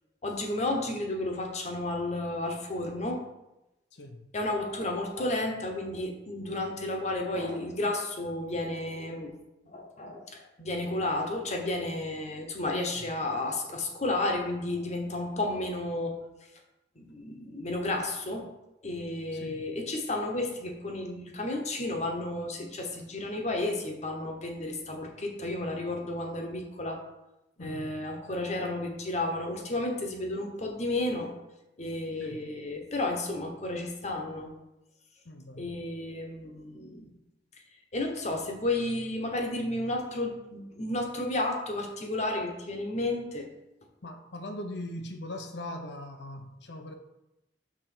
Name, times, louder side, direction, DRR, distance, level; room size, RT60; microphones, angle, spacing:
voice 1, 0.2-3.2 4.3-9.3 9.6-16.2 17.0-18.5 18.8-27.0 27.6-31.3 31.8-34.5 35.6-37.1 37.9-43.5, left 2 dB, 40° left, 2 dB, 1.1 m, -32 dB
voice 2, 3.9-4.3 12.9-13.1 19.3-19.7 27.6-28.1 32.2-32.5 35.2-35.8 44.0-46.9, left 1 dB, 75° left, 7 dB, 0.8 m, -41 dB
6.1 x 3.9 x 6.0 m, 0.92 s
head